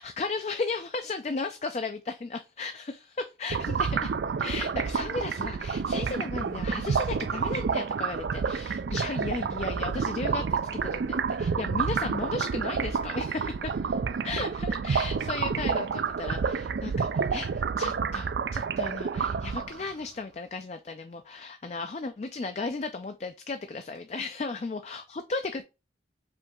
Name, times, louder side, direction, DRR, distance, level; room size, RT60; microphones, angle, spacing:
voice 1, 0.0-4.1 4.4-14.0 14.2-25.6, left 3 dB, 40° left, 8 dB, 0.4 m, -35 dB
sound 1, 3.5-19.9, right 6 dB, 80° right, 0.4 m, -29 dB
5.1 x 2.8 x 3.5 m, 0.28 s
head